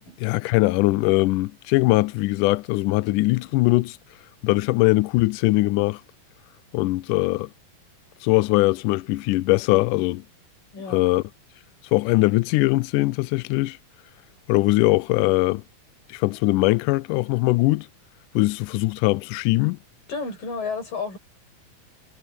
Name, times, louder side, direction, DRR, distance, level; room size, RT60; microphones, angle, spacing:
voice 1, 0.2-4.0 4.4-6.0 6.7-7.5 8.2-10.2 10.9-11.2 11.9-13.8 14.5-15.6 16.1-17.9 18.3-19.8, left 21 dB, 85° left, 1.8 m, -21 dB
voice 2, 20.1-21.2, left 4 dB, 65° left, 9.1 m, -31 dB
omnidirectional pair, 4.2 m